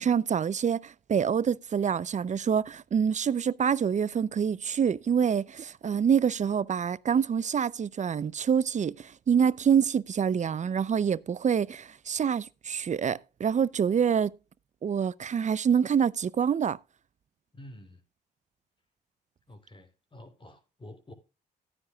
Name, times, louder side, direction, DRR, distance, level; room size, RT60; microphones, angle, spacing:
voice 1, 0.0-14.3 14.8-16.8, right 7 dB, 40° right, 0.6 m, -26 dB
voice 2, 17.5-18.0 19.5-21.1, left 1 dB, 30° left, 3.6 m, -49 dB
16.0 x 9.6 x 2.4 m
supercardioid pair, 60°, 18 cm